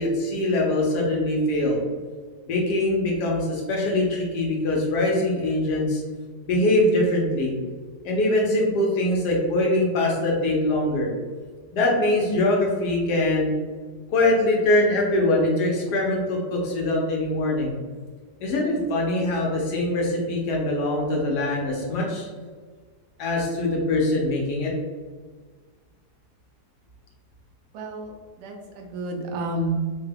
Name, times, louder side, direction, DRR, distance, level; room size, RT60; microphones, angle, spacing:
voice 1, 0.0-1.8 2.5-6.0 6.4-7.5 8.0-11.1 11.7-13.5 14.1-17.7 18.4-22.3 23.2-24.7, left 1 dB, 80° left, -1 dB, 1.4 m, -23 dB
voice 2, 27.7-29.9, right 2 dB, 85° right, 1 dB, 1.3 m, -30 dB
3.6 x 2.2 x 3.4 m, 1.5 s
omnidirectional pair, 1.7 m